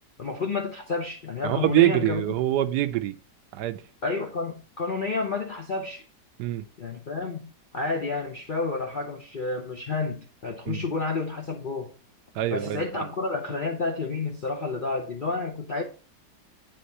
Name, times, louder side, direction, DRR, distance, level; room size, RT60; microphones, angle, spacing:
voice 1, 0.2-2.2 4.0-6.0 6.8-11.9 12.5-15.8, left 3 dB, 55° left, 0.5 m, -30 dB
voice 2, 1.4-3.2 3.5-3.8 6.4-6.6 10.7-10.8 12.3-13.0, right 14 dB, 80° right, 1.1 m, -24 dB
7.7 x 3.6 x 5.3 m
omnidirectional pair, 1.9 m